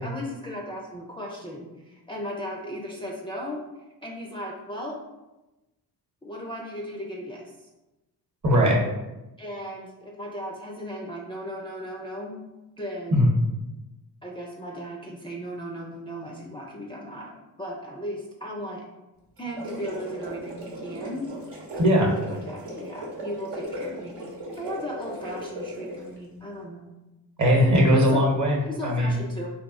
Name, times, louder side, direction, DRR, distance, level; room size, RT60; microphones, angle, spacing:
voice 1, 0.0-3.6 4.0-5.0 6.2-7.5 9.4-12.4 12.8-13.3 14.2-18.8 19.4-21.3 21.8-24.1 24.6-26.9 27.9-28.2 28.7-29.5, equal, 15° left, -3 dB, 0.4 m, -36 dB
voice 2, 8.4-8.8 13.1-13.3 21.8-22.1 27.4-29.2, equal, 45° right, -1 dB, 0.9 m, -20 dB
sound 1, 19.4-26.2, equal, 75° right, 0.9 m, -37 dB
2.3 x 2.0 x 3.6 m, 1.0 s
supercardioid pair, 50°, 42 cm